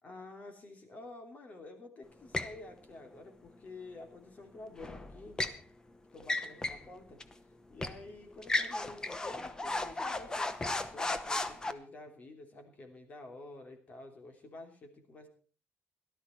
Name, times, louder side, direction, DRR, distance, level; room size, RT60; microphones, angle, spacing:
voice 1, 0.0-5.4 6.1-7.2 7.7-15.3, left 2 dB, 35° left, 5 dB, 3.0 m, -50 dB
sound 1, 2.3-2.6 4.8-5.6 6.2-6.9 7.2-7.3 7.8-8.0 8.4-11.7, left 2 dB, 15° left, 1.0 m, -35 dB
17.5 x 12.5 x 4.5 m, 0.40 s
cardioid pair, 165°, 4 cm